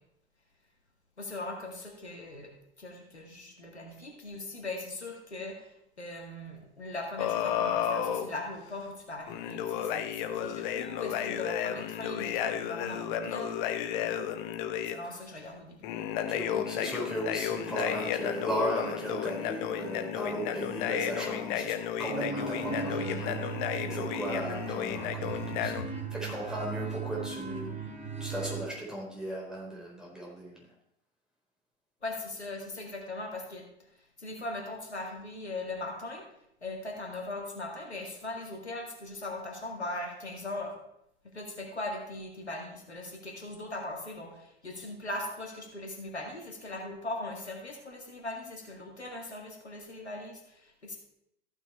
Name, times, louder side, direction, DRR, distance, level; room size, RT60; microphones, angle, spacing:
voice 1, 1.2-2.5 2.8-13.7 14.0-14.3 14.9-15.8 32.0-33.7 34.2-36.2 36.6-40.7 41.3-51.0, left 2 dB, 90° left, 1 dB, 1.9 m, -39 dB
sound 1, 7.2-8.3 9.3-14.9 15.8-25.8, left 9 dB, 50° left, 0.9 m, -33 dB
voice 2, 16.3-27.8 28.2-30.6, right 1 dB, ahead, -4 dB, 4.3 m, -36 dB
sound 2, 22.1-28.6, right 5 dB, 20° right, 3.9 m, -37 dB
14.0 x 6.2 x 4.4 m, 0.79 s
figure-of-eight pair, 85°, 32 cm